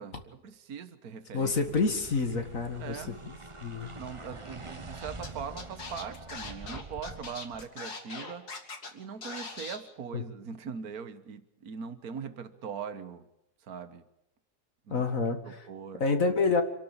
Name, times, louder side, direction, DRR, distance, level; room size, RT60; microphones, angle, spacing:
voice 1, 0.0-1.5 2.8-3.2 4.0-8.5 8.9-13.2 13.6-14.0 14.9-15.0 15.4-16.0, right 6 dB, 70° right, 11 dB, 1.8 m, -41 dB
voice 2, 1.3-3.0 3.6-3.9 10.1-10.2 14.9-15.7 16.0-16.6, left 4 dB, 60° left, 6 dB, 2.3 m, -28 dB
sound 1, 1.4-7.7, right 2 dB, 20° right, 1.1 m, -45 dB
Scratching (performance technique), 5.2-5.3 5.6-8.9 9.2-9.8, left 4 dB, 85° left, 3.1 m, -40 dB
27.5 x 12.5 x 8.8 m, 0.87 s
omnidirectional pair, 1.6 m